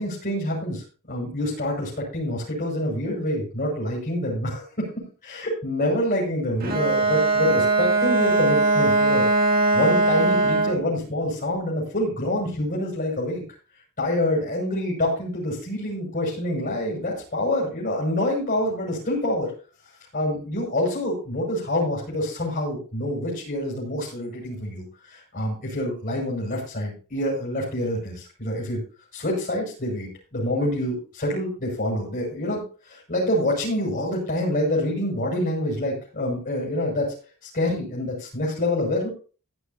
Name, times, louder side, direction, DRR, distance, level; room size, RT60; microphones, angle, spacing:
voice 1, 0.0-4.9 5.2-13.4 14.0-19.5 20.1-28.8 29.1-37.1 37.4-39.1, left 1 dB, 40° left, -4 dB, 6.2 m, -26 dB
Bowed string instrument, 6.6-10.9, right 3 dB, 40° right, 2.7 m, -20 dB
15.5 x 11.5 x 2.8 m, 0.36 s
head